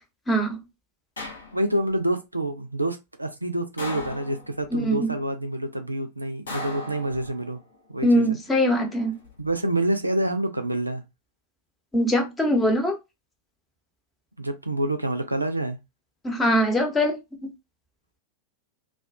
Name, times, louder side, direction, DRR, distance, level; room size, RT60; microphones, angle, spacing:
voice 1, 0.3-0.6 4.7-5.1 8.0-9.1 11.9-13.0 16.2-17.2, equal, 15° left, 0.8 m, -22 dB
sound 1, 1.2-1.9 3.8-4.7 6.5-7.6 9.0-9.5, left 2 dB, 70° left, 0.7 m, -37 dB
voice 2, 1.5-7.6 7.9-8.4 9.4-11.0 14.4-15.8, right 1 dB, 85° right, 0.4 m, -27 dB
2.3 x 2.2 x 2.5 m
figure-of-eight pair, 90°, 0 cm